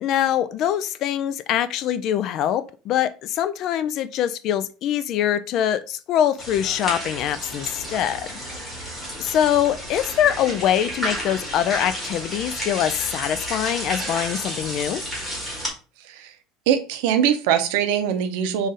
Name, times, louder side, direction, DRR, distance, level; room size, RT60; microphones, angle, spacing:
voice 1, 0.0-8.3 9.2-15.0, left 10 dB, 45° left, 13 dB, 0.3 m, -23 dB
sound 1, 6.4-15.7, equal, 5° left, 1.5 m, -31 dB
voice 2, 16.0-16.3 16.7-18.7, right 9 dB, 75° right, 8 dB, 0.6 m, -22 dB
4.0 x 2.5 x 3.8 m, 0.35 s
cardioid pair, 155°, 0 cm